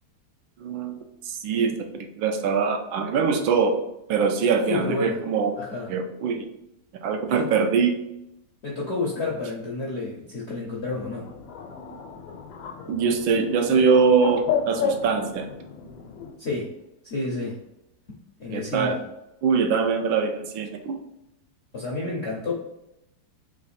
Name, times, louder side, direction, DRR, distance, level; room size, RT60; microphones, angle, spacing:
voice 1, 0.6-1.0 1.3-3.7 4.1-5.6 5.9-6.5 7.0-7.9 12.9-15.5 18.5-18.9 19.4-21.0, right 5 dB, 85° right, 4 dB, 1.4 m, -23 dB
voice 2, 4.7-5.2 5.6-5.9 7.3-7.5 8.6-11.3 16.4-16.7 17.0-17.6 18.4-19.0 21.7-22.5, left 3 dB, 65° left, -3 dB, 0.6 m, -30 dB
Bird, 10.8-16.3, left 6 dB, 85° left, 1.4 m, -32 dB
3.7 x 3.2 x 4.1 m, 0.85 s
omnidirectional pair, 2.1 m